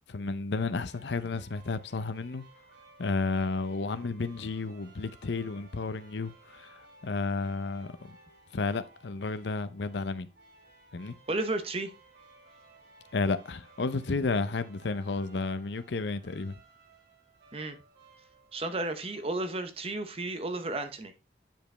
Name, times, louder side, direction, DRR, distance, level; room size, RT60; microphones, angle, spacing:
voice 1, 0.1-2.4 3.0-8.2 8.5-10.3 10.9-11.1 13.1-16.5, left 3 dB, 75° left, 0.6 m, -32 dB
sound 1, 0.8-19.7, right 3 dB, 70° right, 3.7 m, -58 dB
voice 2, 11.3-11.9 17.5-17.8 18.5-21.1, right 2 dB, 30° right, 0.7 m, -33 dB
8.8 x 5.2 x 3.3 m
head